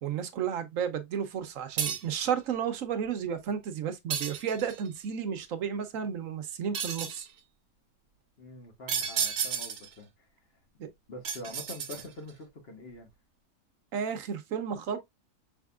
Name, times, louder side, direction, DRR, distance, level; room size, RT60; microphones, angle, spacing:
voice 1, 0.0-7.3 10.8-10.9 13.9-15.0, right 8 dB, 65° right, 1.1 m, -32 dB
sound 1, 1.8-2.2 4.1-4.9 6.7-7.3 8.9-9.9 11.2-12.3, right 7 dB, 90° right, 1.4 m, -32 dB
voice 2, 8.4-10.1 11.1-13.1, left 1 dB, 45° left, 1.5 m, -45 dB
5.5 x 3.6 x 2.3 m
omnidirectional pair, 1.5 m